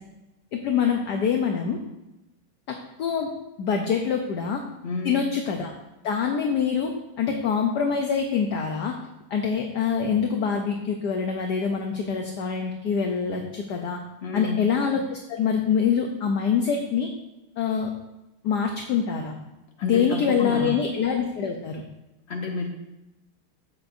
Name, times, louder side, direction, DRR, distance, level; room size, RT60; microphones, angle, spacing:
voice 1, 0.5-1.8 2.7-3.3 3.6-4.6 5.0-5.7 6.0-9.0 9.3-14.0 14.3-17.1 17.6-17.9 18.4-19.3 19.8-21.8, left 6 dB, 60° left, 3 dB, 1.2 m, -25 dB
voice 2, 4.8-5.2 14.2-14.6 19.8-20.8 22.3-22.7, left 3 dB, 35° left, 0 dB, 1.6 m, -30 dB
13.5 x 8.6 x 2.7 m, 0.98 s
omnidirectional pair, 2.3 m